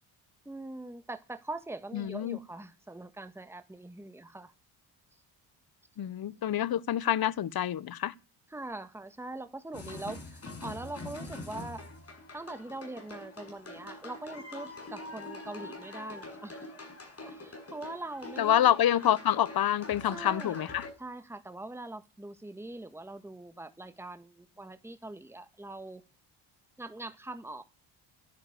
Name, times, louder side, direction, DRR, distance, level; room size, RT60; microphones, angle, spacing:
voice 1, 0.4-4.5 8.5-11.8 12.3-16.7 17.2-18.7 20.1-20.6 21.0-26.0 26.8-27.6, right 2 dB, 5° right, 1.6 m, -42 dB
voice 2, 1.9-2.4 6.0-8.1 18.4-20.9, left 11 dB, 45° left, 1.0 m, -27 dB
sound 1, 9.7-20.9, left 2 dB, 30° left, 7.3 m, -44 dB
12.0 x 11.5 x 6.8 m
supercardioid pair, 70°, 50 cm